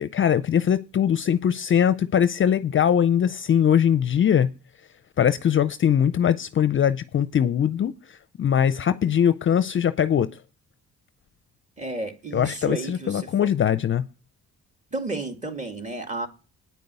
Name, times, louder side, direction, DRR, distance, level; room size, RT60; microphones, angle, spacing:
voice 1, 0.0-4.5 5.2-7.9 8.4-10.3 12.3-14.0, left 9 dB, 40° left, 0.5 m, -21 dB
voice 2, 11.8-13.5 14.9-16.3, right 2 dB, 25° right, 2.2 m, -32 dB
9.3 x 5.2 x 8.1 m
cardioid pair, 90°, 30 cm